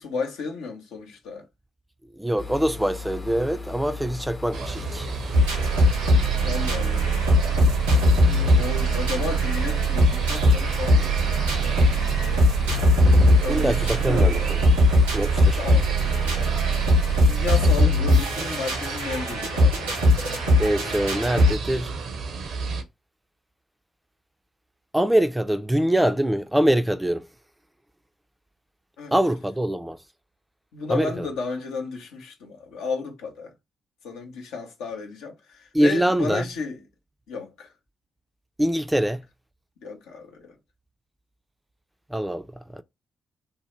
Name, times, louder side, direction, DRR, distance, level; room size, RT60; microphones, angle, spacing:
voice 1, 0.0-1.5 6.4-7.1 8.6-12.7 13.4-14.6 15.5-15.9 16.8-19.9 29.0-29.1 30.7-33.5 34.0-36.8 37.3-37.7 39.8-40.6, left 4 dB, 75° left, 0.6 m, -33 dB
voice 2, 2.1-5.1 13.5-14.6 15.1-15.6 20.6-21.9 24.9-27.3 29.1-30.0 30.9-31.3 35.7-36.5 38.6-39.2 42.1-42.8, right 1 dB, 10° right, 0.3 m, -24 dB
sound 1, 2.4-17.6, left 4 dB, 35° left, 0.6 m, -38 dB
sound 2, 4.5-22.8, right 4 dB, 65° right, 0.5 m, -33 dB
sound 3, 5.3-21.5, equal, 90° right, 0.9 m, -20 dB
2.7 x 2.1 x 3.0 m
hypercardioid pair, 40°, 0 cm